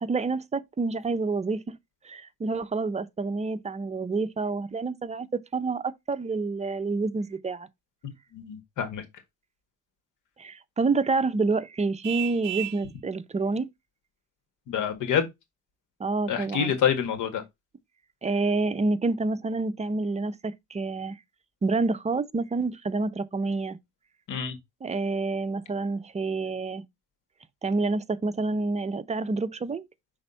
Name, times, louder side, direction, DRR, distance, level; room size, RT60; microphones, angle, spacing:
voice 1, 0.0-1.8 2.0-5.3 5.5-7.7 10.4-13.7 16.0-16.8 18.2-21.2 21.6-23.8 24.8-26.8 27.6-29.9, right 3 dB, 20° right, 0.6 m, -28 dB
voice 2, 8.3-9.0 14.7-15.3 16.3-17.4 24.3-24.6, left 8 dB, 80° left, 1.7 m, -27 dB
Vehicle horn car horn honking, 12.0-12.9, right 15 dB, 75° right, 0.6 m, -33 dB
5.6 x 3.5 x 5.4 m
cardioid pair, 90°, 30 cm